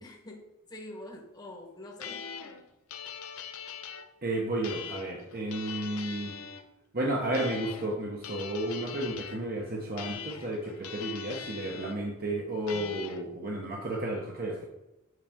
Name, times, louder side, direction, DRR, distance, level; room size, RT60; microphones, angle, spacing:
voice 1, 0.0-2.3, left 1 dB, 20° left, -1 dB, 1.2 m, -45 dB
sound 1, 2.0-4.1 4.6-6.6 7.3-8.0 8.2-9.4 10.0-12.0 12.7-13.2, left 7 dB, 80° left, 0.7 m, -41 dB
voice 2, 4.2-6.3 6.9-14.6, right 1 dB, 45° right, -1 dB, 1.1 m, -32 dB
7.9 x 5.9 x 3.6 m, 0.98 s
head